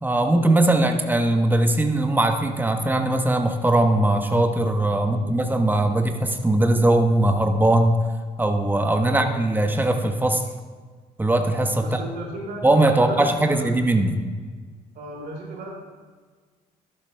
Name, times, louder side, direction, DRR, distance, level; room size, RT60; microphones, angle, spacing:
voice 1, 0.0-8.0 8.4-10.4 11.2-12.0 12.6-14.2, right 1 dB, 10° right, 6 dB, 1.1 m, -20 dB
voice 2, 5.0-5.3 9.1-9.4 11.8-13.7 14.9-15.7, right 2 dB, 55° right, -1 dB, 2.6 m, -35 dB
12.0 x 11.0 x 2.3 m, 1.5 s
figure-of-eight pair, 50°, 20 cm